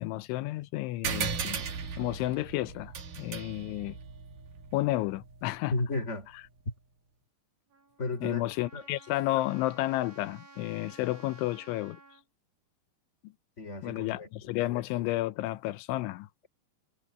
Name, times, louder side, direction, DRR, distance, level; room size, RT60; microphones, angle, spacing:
voice 1, 0.0-1.6 2.0-4.0 4.7-5.7 8.2-12.0 13.2-13.3 13.8-16.3, left 17 dB, 85° left, 3.2 m, -31 dB
sound 1, 1.0-6.0, right 6 dB, 50° right, 3.7 m, -37 dB
voice 2, 5.7-6.3 6.6-6.7 8.0-8.4 8.7-8.8 13.6-14.8, left 2 dB, 15° left, 3.3 m, -34 dB
Trumpet, 7.7-12.2, right 3 dB, 80° right, 10.0 m, -54 dB
omnidirectional pair, 5.3 m